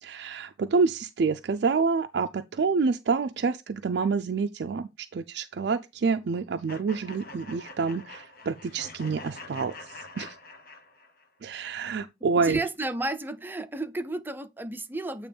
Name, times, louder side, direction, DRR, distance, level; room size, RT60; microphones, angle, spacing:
voice 1, 0.0-10.4 11.4-12.6, right 4 dB, 60° right, 0.4 m, -28 dB
sound 1, 6.7-11.3, left 2 dB, 55° left, 1.1 m, -45 dB
voice 2, 12.4-15.3, right 2 dB, 10° right, 0.5 m, -32 dB
8.5 x 3.0 x 5.2 m
head